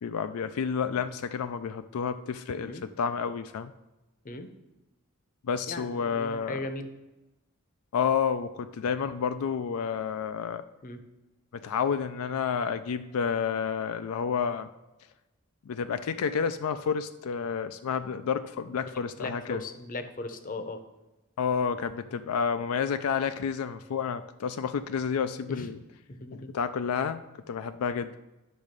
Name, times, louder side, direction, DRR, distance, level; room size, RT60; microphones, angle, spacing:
voice 1, 0.0-3.7 5.4-6.6 7.9-10.6 11.5-14.7 15.7-19.6 21.4-25.8 26.3-27.2 27.5-28.2, left 6 dB, 85° left, 10 dB, 0.4 m, -30 dB
voice 2, 5.7-6.9 10.8-11.0 19.2-20.8 25.5-25.7 26.1-26.5, left 2 dB, 40° left, 9 dB, 0.7 m, -37 dB
10.0 x 3.6 x 6.6 m, 1.0 s
head